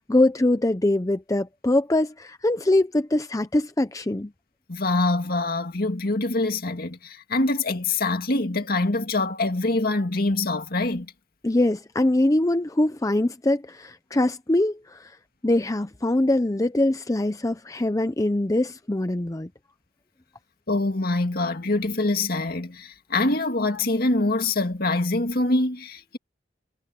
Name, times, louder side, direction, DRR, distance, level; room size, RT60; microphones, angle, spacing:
voice 1, 0.0-4.3 11.4-15.2 15.4-19.5, left 1 dB, 20° left, 0.6 m, -23 dB
voice 2, 4.7-11.1 20.7-26.2, left 2 dB, 55° left, 2.2 m, -24 dB
head